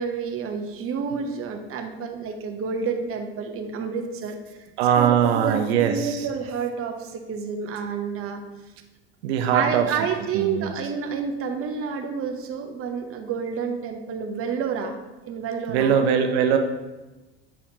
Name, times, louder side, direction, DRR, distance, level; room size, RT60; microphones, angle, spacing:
voice 1, 0.0-4.7 5.0-8.4 9.5-15.0 15.3-15.9, right 6 dB, 45° right, 5 dB, 1.0 m, -29 dB
voice 2, 4.8-6.3 9.2-9.9 10.3-10.7 15.7-16.6, right 8 dB, 75° right, 5 dB, 0.6 m, -21 dB
8.7 x 4.2 x 2.8 m, 1.1 s
hypercardioid pair, 80°, 32 cm